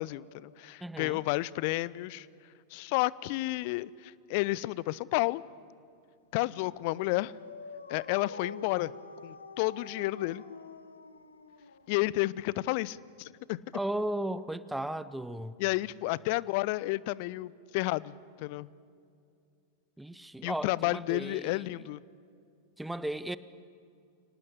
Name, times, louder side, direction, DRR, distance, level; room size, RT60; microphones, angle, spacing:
voice 1, 0.0-2.3 2.7-5.4 6.3-7.3 7.9-8.9 9.2-10.4 11.9-13.6 15.6-18.7 20.4-22.0, left 19 dB, 45° left, 0.5 m, -31 dB
voice 2, 0.8-1.2 13.7-15.6 20.0-21.6 22.8-23.4, right 1 dB, 5° right, 0.7 m, -35 dB
Dog, 6.5-12.2, left 4 dB, 75° left, 1.1 m, -46 dB
25.0 x 18.5 x 8.3 m
figure-of-eight pair, 90°, 0 cm